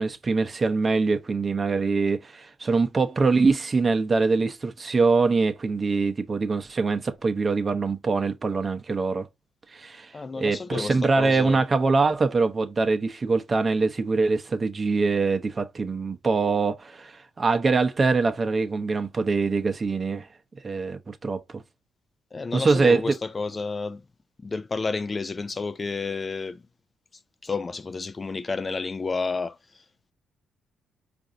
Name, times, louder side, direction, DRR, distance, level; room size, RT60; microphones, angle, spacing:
voice 1, 0.0-9.3 9.7-10.1 10.4-20.3 20.6-21.6 22.5-23.1, right 4 dB, 30° right, 0.7 m, -23 dB
voice 2, 10.1-11.6 22.3-24.0 24.4-26.6 27.4-29.6, left 4 dB, 30° left, 0.4 m, -30 dB
4.7 x 2.6 x 2.5 m
cardioid pair, 90°, 0 cm